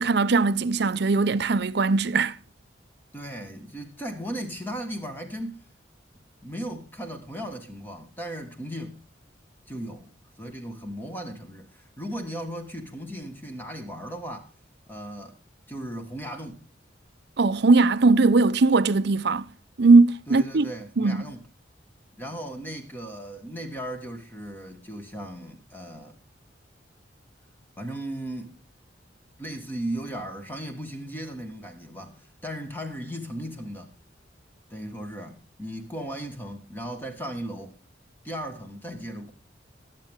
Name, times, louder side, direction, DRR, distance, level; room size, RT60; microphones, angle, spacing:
voice 1, 0.0-2.4 17.4-19.5 19.8-20.7 21.0-21.3, right 3 dB, 65° right, 0.6 m, -20 dB
voice 2, 3.1-5.6 6.4-9.1 9.7-14.5 14.9-15.4 15.7-16.7 20.3-21.4 22.2-26.2 27.8-28.6 29.4-33.9 34.7-37.7 38.2-39.3, right 1 dB, 10° left, 1.7 m, -36 dB
20.5 x 7.6 x 3.6 m
head